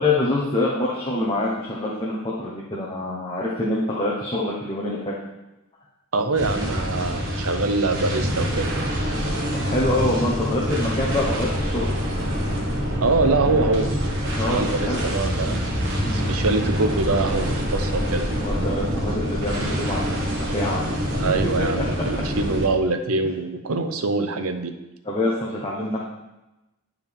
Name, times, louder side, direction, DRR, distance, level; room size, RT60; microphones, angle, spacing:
voice 1, 0.0-5.1 9.6-11.9 14.4-15.0 16.0-16.3 18.4-20.2 20.5-21.1 21.6-21.9 25.0-26.0, left 2 dB, 25° left, -5 dB, 1.0 m, -25 dB
voice 2, 6.1-8.7 13.0-13.9 14.4-15.6 16.1-18.3 21.1-24.7, right 3 dB, 75° right, 7 dB, 0.8 m, -24 dB
sound 1, 6.4-22.7, equal, 55° right, 1.3 m, -26 dB
10.5 x 4.7 x 3.5 m, 0.98 s
head